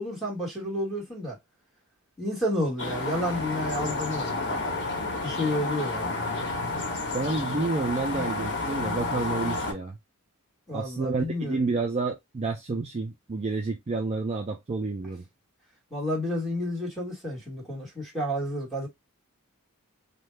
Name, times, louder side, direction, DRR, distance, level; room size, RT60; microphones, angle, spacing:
voice 1, 0.0-1.4 2.2-4.8 5.2-6.5 10.7-11.6 15.9-18.9, left 1 dB, ahead, 1.5 m, -31 dB
sound 1, 2.8-9.7, left 3 dB, 55° left, 1.1 m, -30 dB
voice 2, 7.1-10.0 10.7-15.3, right 3 dB, 30° right, 0.4 m, -29 dB
2.6 x 2.2 x 3.2 m
head